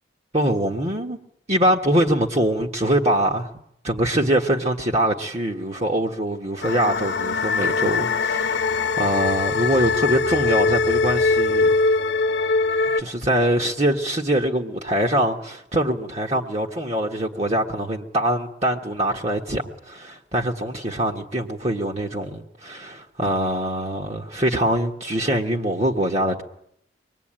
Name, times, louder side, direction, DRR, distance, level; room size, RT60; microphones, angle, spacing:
voice 1, 0.3-1.2 1.5-3.5 3.8-11.7 13.0-26.4, right 1 dB, 35° right, 1.5 m, -23 dB
sound 1, 6.6-13.0, left 4 dB, 85° left, 0.9 m, -22 dB
24.5 x 20.5 x 8.9 m
head